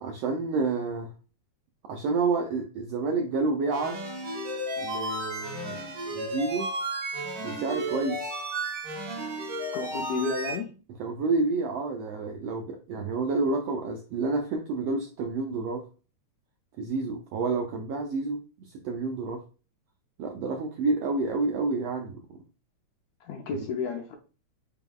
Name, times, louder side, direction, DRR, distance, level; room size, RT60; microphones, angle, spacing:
voice 1, 0.0-1.1 1.9-4.0 4.8-5.8 6.1-6.7 7.4-8.3 11.0-15.8 16.8-18.4 18.8-19.4 20.2-22.4, right 3 dB, 90° right, 2 dB, 1.4 m, -29 dB
sound 1, 3.7-10.6, right 1 dB, 60° right, 1.1 m, -33 dB
voice 2, 9.7-10.7 23.2-24.2, left 4 dB, 75° left, 2 dB, 1.6 m, -31 dB
4.8 x 3.5 x 2.3 m, 0.35 s
omnidirectional pair, 3.4 m